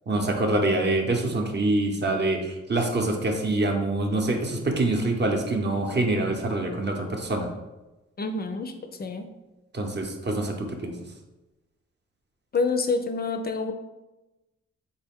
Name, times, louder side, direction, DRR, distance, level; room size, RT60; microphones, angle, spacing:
voice 1, 0.1-7.5 9.7-10.9, right 2 dB, 35° right, 3 dB, 0.8 m, -25 dB
voice 2, 8.2-8.7 9.0-9.3 12.5-13.7, left 4 dB, 35° left, 7 dB, 0.5 m, -27 dB
3.9 x 2.1 x 3.6 m, 1.0 s
supercardioid pair, 50°, 29 cm